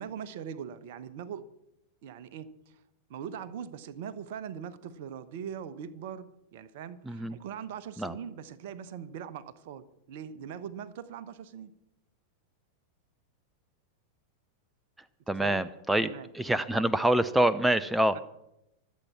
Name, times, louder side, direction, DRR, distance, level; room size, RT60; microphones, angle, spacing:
voice 1, 0.0-1.5 2.0-2.8 3.1-11.7 15.3-15.6 16.0-16.3 16.7-16.8 18.1-18.2, right 8 dB, 50° right, 15 dB, 1.1 m, -41 dB
voice 2, 7.1-7.4 8.0-8.2 15.3-18.2, right 1 dB, 5° right, 16 dB, 0.6 m, -26 dB
25.0 x 8.5 x 6.0 m, 0.85 s
figure-of-eight pair, 90°, 0 cm